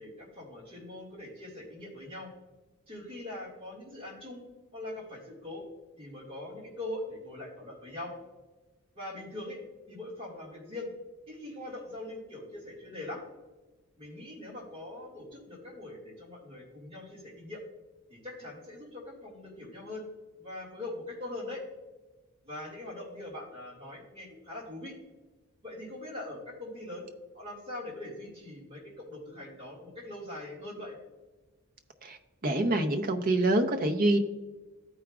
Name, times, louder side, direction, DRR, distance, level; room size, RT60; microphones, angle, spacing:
voice 1, 0.0-2.3 2.9-4.4 4.7-5.6 6.0-8.2 8.9-9.6 9.9-10.9 11.3-13.2 14.0-17.6 18.1-20.0 20.4-21.6 22.4-24.9 25.6-27.1 27.3-31.0, left 1 dB, 25° right, -4 dB, 1.9 m, -42 dB
voice 2, 32.4-34.2, right 1 dB, 40° right, 4 dB, 0.7 m, -26 dB
14.0 x 4.9 x 2.3 m, 1.2 s
head